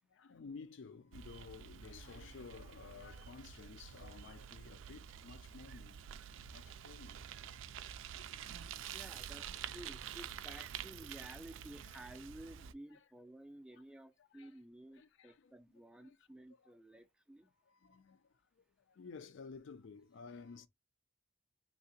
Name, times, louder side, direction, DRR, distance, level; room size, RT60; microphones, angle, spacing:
voice 1, 0.1-6.0 6.5-7.2 8.2-8.7 9.6-9.9 11.9-12.0 12.9-13.0 13.7-13.8 14.2-14.5 15.0-15.5 16.0-16.2 16.9-17.0 17.7-20.7, left 5 dB, 75° left, 0.4 m, -54 dB
Bicycle, 1.1-12.7, right 9 dB, 90° right, 0.3 m, -48 dB
voice 2, 8.9-17.5, right 1 dB, 5° right, 0.3 m, -54 dB
3.4 x 2.8 x 2.7 m
head